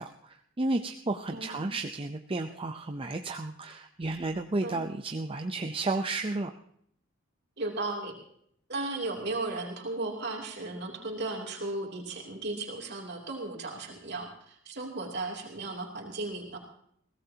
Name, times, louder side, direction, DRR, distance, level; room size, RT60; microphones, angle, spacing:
voice 1, 0.0-6.5, right 2 dB, 25° right, 5 dB, 0.7 m, -32 dB
voice 2, 1.3-1.7 4.6-4.8 7.6-8.1 8.7-16.6, right 2 dB, 55° right, 0 dB, 3.0 m, -35 dB
22.0 x 17.0 x 2.9 m, 0.68 s
head